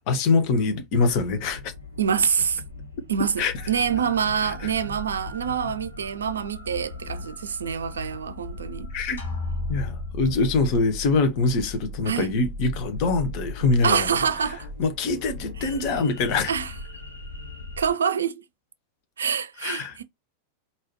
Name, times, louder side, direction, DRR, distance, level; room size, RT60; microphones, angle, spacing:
voice 1, 0.1-1.7 3.4-3.5 4.4-4.5 8.9-9.2 9.7-14.1 14.8-16.5 19.6-20.0, left 3 dB, 45° left, 1.1 m, -24 dB
sound 1, 1.1-17.9, left 2 dB, 85° left, 1.6 m, -38 dB
voice 2, 2.0-2.6 3.1-8.9 12.1-12.3 13.8-14.7 15.6-15.7 16.5-16.7 17.8-18.4 19.2-20.0, right 7 dB, 70° right, 0.5 m, -26 dB
sound 2, 9.2-11.0, left 3 dB, 65° left, 1.4 m, -35 dB
4.7 x 2.8 x 3.1 m
figure-of-eight pair, 90°, 0 cm